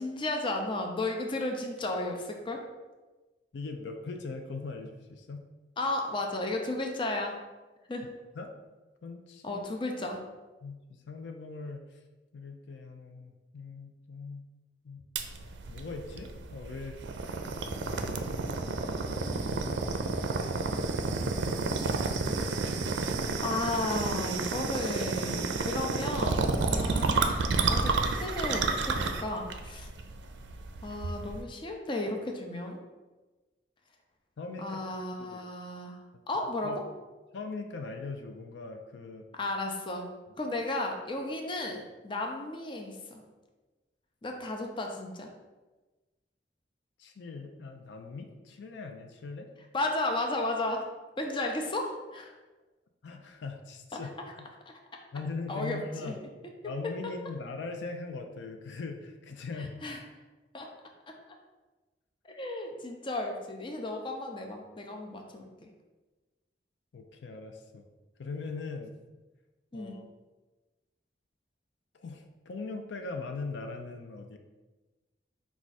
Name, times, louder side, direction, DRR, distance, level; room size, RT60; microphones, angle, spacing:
voice 1, 0.0-2.6 5.8-7.4 7.9-8.0 9.4-10.2 23.4-29.9 30.8-32.8 34.6-36.0 36.3-36.7 39.3-40.1 40.4-43.2 44.2-45.3 49.7-50.9 51.2-52.3 54.7-54.8 55.5-56.2 59.8-60.0 60.5-60.7 61.1-61.2 62.3-65.7 69.7-70.0, left 2 dB, 30° left, 2 dB, 0.5 m, -34 dB
voice 2, 3.5-5.5 8.3-8.5 9.0-9.6 10.6-11.8 12.3-14.4 14.8-15.0 15.3-17.4 17.8-18.3 19.5-19.9 21.2-22.4 34.4-35.4 36.6-36.8 37.3-39.3 47.0-49.5 53.0-54.4 55.1-56.2 56.6-59.8 66.9-67.8 68.2-68.9 69.7-70.1 71.9-74.4, left 3 dB, 85° left, 5 dB, 0.4 m, -41 dB
sound 1, 15.2-31.4, right 3 dB, 80° right, 0.4 m, -31 dB
4.7 x 2.4 x 4.1 m, 1.2 s
head